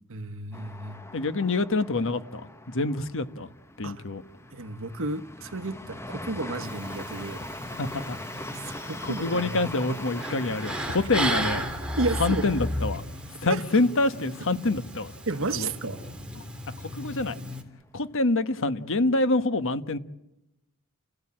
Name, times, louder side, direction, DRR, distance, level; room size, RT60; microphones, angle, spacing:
voice 1, 0.1-1.1 3.8-4.0 4.5-7.4 8.5-9.7 12.0-12.5 13.5-13.6 15.3-16.0, right 2 dB, 65° right, 1.3 m, -32 dB
sound 1, 0.5-14.2 14.6-14.7 15.0-15.6, left 1 dB, 10° left, 1.1 m, -42 dB
voice 2, 1.1-3.5 3.8-4.2 7.7-8.2 8.6-11.7 12.2-13.0 13.4-15.1 15.5-15.7 16.4-17.4 17.9-20.0, left 2 dB, 60° left, 1.3 m, -26 dB
sound 2, 6.6-17.6, equal, 5° right, 3.2 m, -35 dB
29.5 x 17.0 x 8.8 m
head